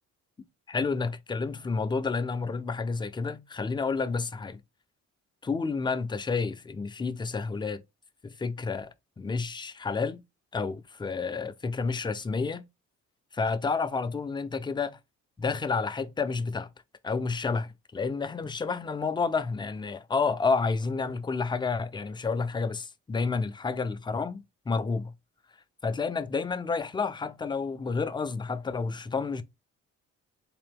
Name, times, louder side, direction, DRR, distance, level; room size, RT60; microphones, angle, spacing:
voice 1, 0.7-4.6 5.4-7.8 8.2-10.2 10.5-12.6 13.3-15.0 15.4-16.7 17.0-25.1 25.8-29.4, left 4 dB, 15° left, 0.4 m, -30 dB
3.7 x 2.5 x 3.5 m
cardioid pair, 90°, 30 cm